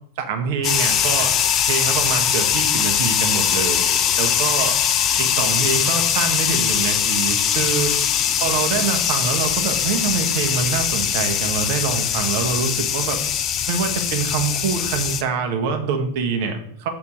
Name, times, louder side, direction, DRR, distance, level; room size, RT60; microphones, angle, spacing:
voice 1, 0.2-1.4 1.7-3.8 4.2-4.8 5.2-8.0 8.4-13.2 13.7-16.9, right 6 dB, 50° right, 5 dB, 1.5 m, -25 dB
sound 1, 0.6-15.2, left 9 dB, 30° left, 0.7 m, -21 dB
7.0 x 4.2 x 6.3 m, 0.69 s
figure-of-eight pair, 90°, 0 cm